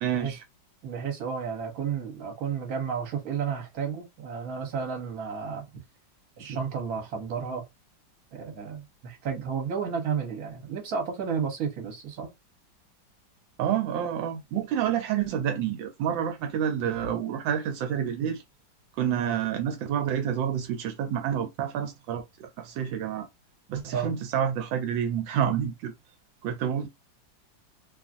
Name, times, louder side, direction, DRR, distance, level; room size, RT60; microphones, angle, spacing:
voice 1, 0.0-0.4 13.6-18.4 19.0-23.3 23.7-25.9 26.4-26.9, right 9 dB, 85° right, 1.3 m, -28 dB
voice 2, 0.8-5.6 6.4-7.6 8.3-12.3 19.2-19.4 23.9-24.1, right 6 dB, 55° right, 1.2 m, -32 dB
2.9 x 2.4 x 2.4 m
omnidirectional pair, 2.1 m